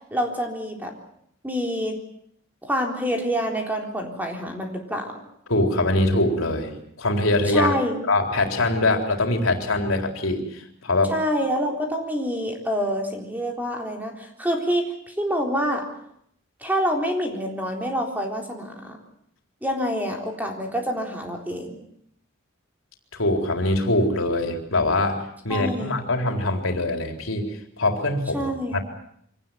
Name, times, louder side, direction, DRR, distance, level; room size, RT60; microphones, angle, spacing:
voice 1, 0.1-0.9 1.4-2.0 2.6-5.1 7.5-8.0 11.1-15.9 16.6-19.0 19.6-21.8 25.5-26.0 28.3-28.8, equal, 10° right, 2 dB, 3.9 m, -27 dB
voice 2, 5.5-7.7 8.1-11.1 23.1-28.8, left 2 dB, 80° left, 4 dB, 4.0 m, -23 dB
25.0 x 18.5 x 9.2 m, 0.72 s
head